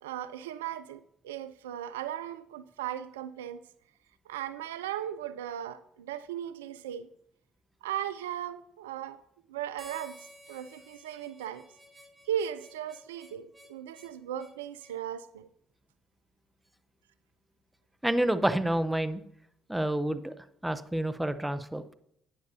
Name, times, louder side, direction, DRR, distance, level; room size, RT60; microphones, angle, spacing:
voice 1, 0.0-3.6 4.3-7.1 7.8-9.2 9.5-10.2 10.5-11.6 12.2-15.5, right 10 dB, 90° right, 14 dB, 0.3 m, -37 dB
Harmonica, 9.8-15.0, right 1 dB, 25° right, 1.8 m, -53 dB
voice 2, 18.0-19.2 19.7-20.3 20.6-21.9, right 1 dB, 5° right, 12 dB, 0.7 m, -28 dB
12.0 x 9.3 x 2.7 m, 0.74 s
hypercardioid pair, 55°, 0 cm